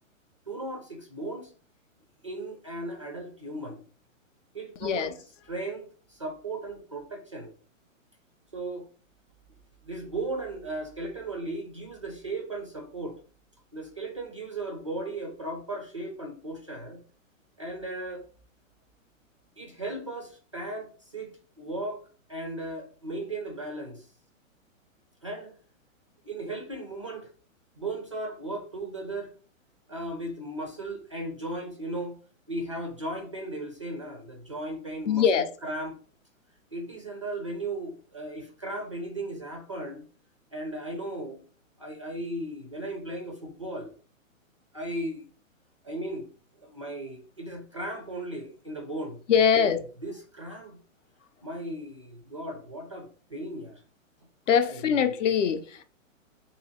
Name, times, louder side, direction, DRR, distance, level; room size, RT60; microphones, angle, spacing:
voice 1, 0.5-1.5 2.2-3.8 4.5-5.2 5.5-7.5 8.5-8.9 9.8-13.2 13.7-17.0 17.6-18.3 19.6-22.0 22.3-24.1 25.2-25.6 26.2-27.3 27.8-29.3 29.9-32.2 32.5-35.2 35.6-36.0 36.7-40.0 40.5-41.4 41.8-44.0 44.7-45.2 45.8-46.3 46.6-49.2 49.5-49.7 50.0-50.8 51.4-53.8 54.7-55.0, right 2 dB, 25° right, 0.3 m, -36 dB
voice 2, 35.1-35.5 49.3-49.8 54.5-55.8, left 7 dB, 65° left, 0.7 m, -23 dB
2.9 x 2.8 x 4.1 m
hypercardioid pair, 155°, 41 cm